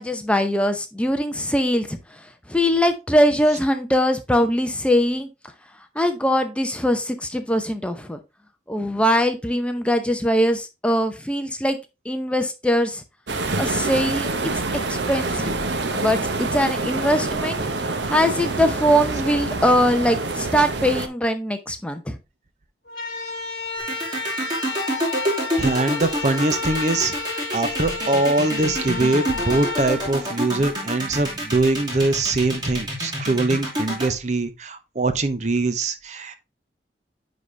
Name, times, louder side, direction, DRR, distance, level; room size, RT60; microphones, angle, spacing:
voice 1, 0.0-2.0 2.5-5.3 6.0-8.2 8.7-11.8 12.1-13.0 13.6-14.3 14.9-15.5 15.9-16.2 16.5-17.6 18.1-22.2, equal, 5° left, 0.7 m, -21 dB
sound 1, 13.3-21.1, right 3 dB, 70° right, 0.9 m, -26 dB
sound 2, 22.9-31.0, left 3 dB, 50° left, 2.0 m, -31 dB
sound 3, 23.8-34.1, equal, 25° right, 2.7 m, -27 dB
voice 2, 25.6-36.4, right 2 dB, 40° right, 0.6 m, -23 dB
9.9 x 4.1 x 3.2 m
head